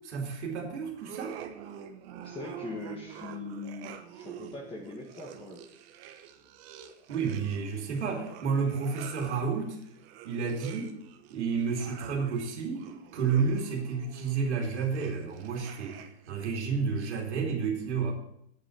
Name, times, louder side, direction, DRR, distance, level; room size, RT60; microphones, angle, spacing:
voice 1, 0.0-1.3 7.1-9.8 10.2-10.9 11.3-12.8 13.1-18.1, right 5 dB, 85° right, 1 dB, 2.9 m, -31 dB
sound 1, 1.0-16.3, right 9 dB, 60° right, 1.4 m, -47 dB
voice 2, 2.2-5.6, left 3 dB, 15° left, -2 dB, 1.9 m, -41 dB
8.6 x 8.1 x 6.5 m, 0.74 s
hypercardioid pair, 115°, 33 cm